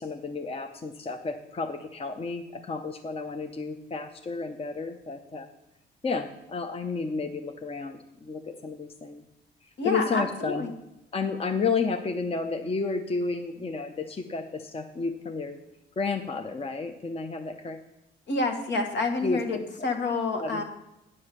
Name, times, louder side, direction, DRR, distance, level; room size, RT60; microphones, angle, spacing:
voice 1, 0.0-5.5 6.0-9.2 9.8-10.7 11.1-15.6 16.0-17.8 19.2-19.9 20.4-20.6, left 4 dB, 30° left, 5 dB, 0.8 m, -31 dB
voice 2, 9.8-10.7 18.3-20.6, left 3 dB, 65° left, 5 dB, 1.5 m, -28 dB
9.7 x 5.5 x 6.8 m, 0.90 s
cardioid pair, 90°, 20 cm